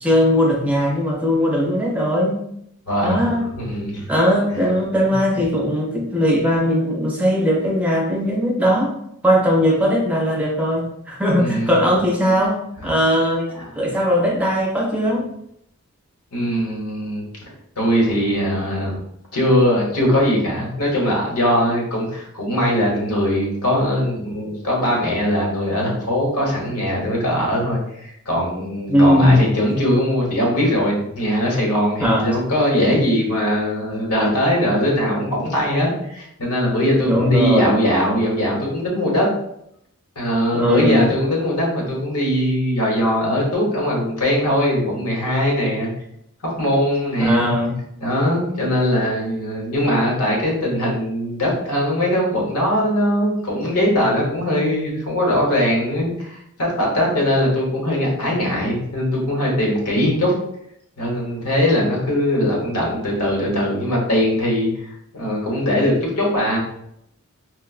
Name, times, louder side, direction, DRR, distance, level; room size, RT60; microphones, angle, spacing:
voice 1, 0.0-2.4 3.0-3.5 4.1-8.9 9.2-13.5 13.7-15.3 28.9-29.4 32.0-32.3 37.1-37.9 40.5-41.1 47.2-47.8, equal, 5° right, -1 dB, 0.5 m, -19 dB
voice 2, 2.9-3.3 3.6-4.1 11.4-11.8 13.6-13.7 16.3-19.0 19.3-39.3 40.2-45.9 46.6-47.5 48.0-60.3 61.0-64.7 65.1-66.6, equal, 90° left, -2 dB, 1.1 m, -20 dB
4.3 x 2.1 x 2.4 m, 0.75 s
head